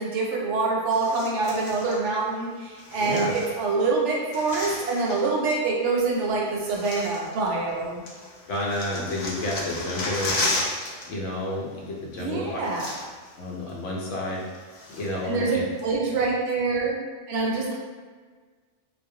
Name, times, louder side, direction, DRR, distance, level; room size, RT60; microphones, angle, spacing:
voice 1, 0.0-8.0 12.2-12.9 15.2-15.6 15.8-17.0 17.3-17.7, right 3 dB, 75° right, -2 dB, 0.9 m, -25 dB
sound 1, 0.9-2.0 2.8-5.3 6.2-6.3 6.6-7.8 8.1-11.1 11.3-11.5 12.3-12.4 12.6-13.3 13.7-13.8 14.3-15.3 15.8-15.9, left 2 dB, 65° left, 0.4 m, -33 dB
voice 2, 3.0-3.3 8.5-12.6 13.4-15.6, left 1 dB, 80° left, -3 dB, 1.0 m, -31 dB
2.4 x 2.0 x 2.7 m, 1.5 s
omnidirectional pair, 1.3 m